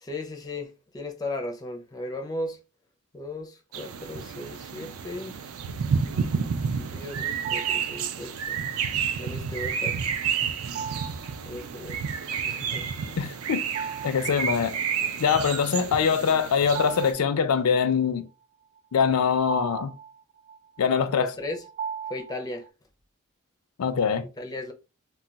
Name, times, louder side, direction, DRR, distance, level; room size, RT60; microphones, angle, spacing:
voice 1, 0.0-2.6 3.1-5.4 6.9-8.6 9.2-10.0 11.5-12.0 12.4-12.9 21.1-21.6 22.1-22.6 24.4-24.7, left 2 dB, 15° left, 0.4 m, -36 dB
sound 1, 3.7-17.1, right 6 dB, 70° right, 0.4 m, -30 dB
sound 2, 7.4-8.1 10.7-11.4 13.6-14.4 14.7-14.8 16.3-17.8 18.8-22.7, right 7 dB, 40° right, 0.8 m, -37 dB
voice 2, 13.2-13.6 14.0-14.8 15.2-18.3 18.9-19.9 20.8-21.3 23.8-24.2, left 6 dB, 80° left, 0.4 m, -23 dB
2.3 x 2.2 x 3.9 m
head